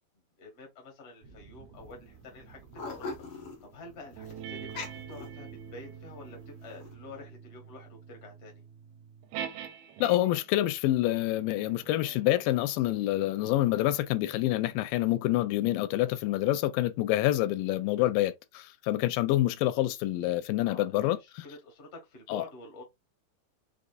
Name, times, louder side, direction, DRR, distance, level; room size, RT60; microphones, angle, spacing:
voice 1, 0.4-8.6 20.6-22.8, left 2 dB, 40° left, 0.9 m, -48 dB
sound 1, 1.2-7.3, right 4 dB, 65° right, 1.7 m, -56 dB
sound 2, 1.8-1.9 2.2-5.9 6.4-6.9, left 3 dB, 70° left, 1.2 m, -42 dB
sound 3, 4.2-10.6 11.3-16.2, right 8 dB, 85° right, 2.4 m, -46 dB
voice 2, 10.0-21.2 22.3-22.5, left 15 dB, 85° left, 2.3 m, -27 dB
6.0 x 2.6 x 2.5 m
omnidirectional pair, 4.0 m